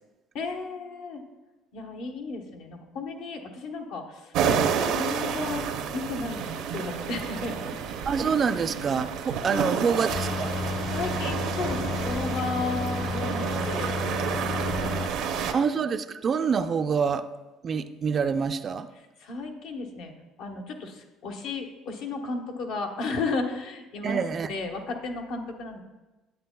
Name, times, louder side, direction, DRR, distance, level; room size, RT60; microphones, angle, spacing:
voice 1, 0.3-1.2 1.7-7.7 9.5-9.6 10.5-15.6 19.2-20.1 20.4-24.2 24.5-25.8, left 3 dB, 75° left, 3 dB, 1.1 m, -34 dB
sound 1, 4.3-15.5, right 7 dB, 70° right, 0.7 m, -30 dB
sound 2, 6.3-14.0, right 6 dB, 90° right, 1.1 m, -43 dB
voice 2, 8.1-10.6 15.5-17.3 17.6-18.9 24.0-24.5, right 6 dB, 40° right, 10 dB, 0.4 m, -26 dB
sound 3, 10.1-15.1, left 4 dB, 40° left, 0.4 m, -32 dB
9.4 x 8.1 x 2.3 m, 1.1 s
cardioid pair, 105°, 0 cm